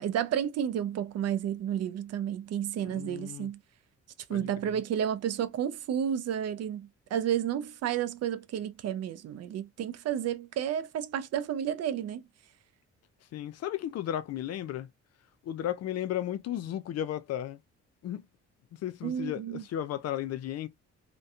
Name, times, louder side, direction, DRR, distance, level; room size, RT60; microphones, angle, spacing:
voice 1, 0.0-3.6 4.3-12.2 19.0-19.6, right 9 dB, 55° right, 0.4 m, -31 dB
voice 2, 2.8-3.5 4.3-4.7 13.3-14.9 15.4-17.6 18.0-18.2 18.7-20.7, left 11 dB, 55° left, 0.4 m, -34 dB
2.6 x 2.2 x 2.4 m
cardioid pair, 90°, 30 cm